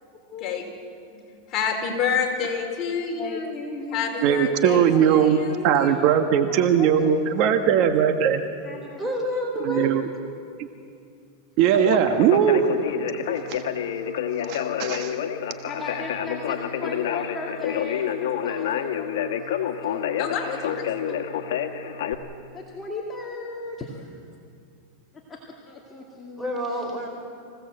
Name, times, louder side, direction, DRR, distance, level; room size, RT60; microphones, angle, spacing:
voice 1, 1.5-3.5 3.9-5.6 20.2-20.9, left 6 dB, 35° left, 1 dB, 4.4 m, -28 dB
voice 2, 3.2-4.1 4.7-6.1 6.5-7.9 8.2-8.3 8.6-9.1 15.6-20.2 22.5-24.1 25.3-25.4 25.6-26.5, left 3 dB, 20° left, -2 dB, 2.4 m, -37 dB
voice 3, 4.2-5.4 5.6-8.4 9.7-10.1 11.6-12.7 13.5-13.6 14.5-15.1, right 9 dB, 50° right, 7 dB, 1.3 m, -20 dB
voice 4, 9.0-10.0 21.1-21.2 26.4-27.1, equal, 10° right, 1 dB, 5.0 m, -28 dB
Conversation, 11.6-22.1, left 9 dB, 75° left, 1.6 m, -28 dB
26.0 x 16.5 x 7.8 m, 2.4 s
supercardioid pair, 130°, 0 cm